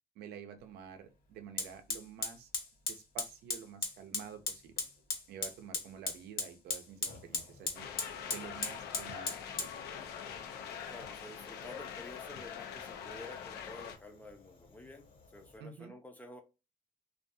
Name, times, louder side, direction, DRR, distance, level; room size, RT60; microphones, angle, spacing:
voice 1, 0.2-2.5 2.9-4.7 5.3-7.9 8.3-9.7 15.6-15.9, right 7 dB, 85° right, 0.5 m, -49 dB
Fire, 0.6-0.7 1.6-15.6, left 4 dB, 60° left, 1.0 m, -41 dB
sound 1, 7.7-14.0, left 8 dB, 85° left, 0.5 m, -44 dB
voice 2, 10.9-15.0 15.3-16.4, left 2 dB, 10° left, 0.5 m, -50 dB
2.4 x 2.2 x 2.6 m
cardioid pair, 145°, 16 cm